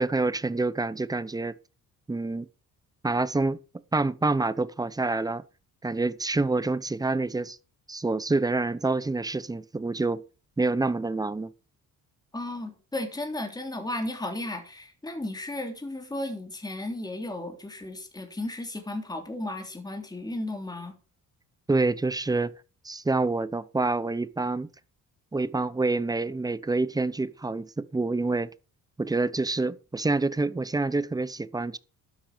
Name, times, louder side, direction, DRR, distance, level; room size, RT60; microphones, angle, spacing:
voice 1, 0.0-1.5 2.1-2.5 3.0-3.6 3.9-5.4 5.8-7.6 7.9-10.2 10.6-11.5 21.7-22.5 22.8-24.7 25.3-28.5 29.0-31.8, right 3 dB, 10° right, 0.7 m, -27 dB
voice 2, 12.3-20.9, left 1 dB, 10° left, 3.4 m, -34 dB
12.0 x 10.0 x 5.1 m
cardioid pair, 125°, 34 cm